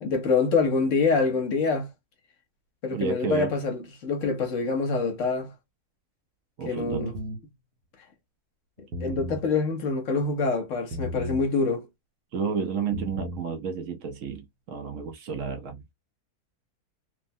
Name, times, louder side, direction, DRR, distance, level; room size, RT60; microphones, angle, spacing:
voice 1, 0.0-1.9 2.8-5.5 6.7-7.2 9.0-11.9, left 4 dB, 65° left, 0.9 m, -25 dB
voice 2, 2.9-3.5 6.6-7.1 12.3-15.8, right 6 dB, 65° right, 0.9 m, -31 dB
sound 1, 6.9-7.4 8.8-9.4 10.9-11.5 12.8-13.4, equal, 90° right, 1.3 m, -34 dB
3.0 x 2.1 x 2.5 m
omnidirectional pair, 1.6 m